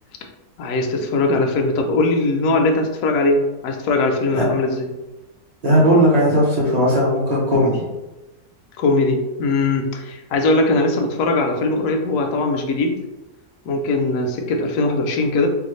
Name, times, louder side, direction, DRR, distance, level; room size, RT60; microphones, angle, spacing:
voice 1, 0.6-4.9 8.8-13.0 13.7-15.5, left 2 dB, 70° left, 3 dB, 0.9 m, -20 dB
voice 2, 5.6-7.8, equal, 35° right, -5 dB, 0.7 m, -17 dB
3.4 x 2.3 x 3.0 m, 1.0 s
omnidirectional pair, 1.6 m